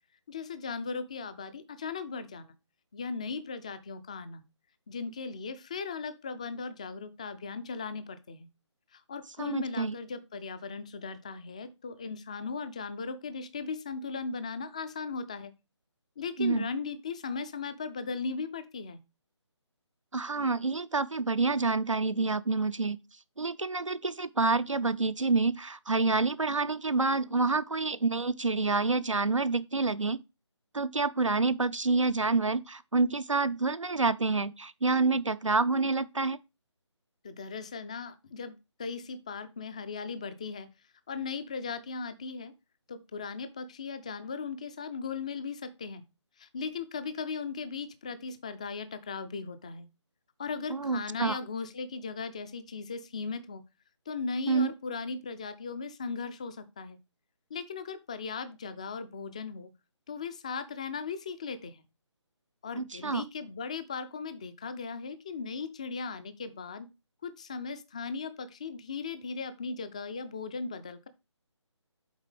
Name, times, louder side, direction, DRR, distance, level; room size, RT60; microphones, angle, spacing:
voice 1, 0.3-2.5 2.9-4.4 4.9-8.5 8.9-15.5 16.2-19.0 37.2-38.5 38.8-40.7 41.1-42.5 42.9-46.0 46.4-49.9 50.4-53.6 54.1-57.0 57.5-59.7 60.1-61.8 62.6-66.9 67.2-71.1, left 5 dB, 15° left, 0.4 m, -37 dB
voice 2, 9.4-10.0 16.4-16.7 20.1-23.0 23.4-30.2 30.7-36.4 50.7-51.4 54.5-54.7 62.8-63.2, right 3 dB, 85° right, 0.7 m, -28 dB
7.3 x 4.4 x 4.8 m
figure-of-eight pair, 150°, 16 cm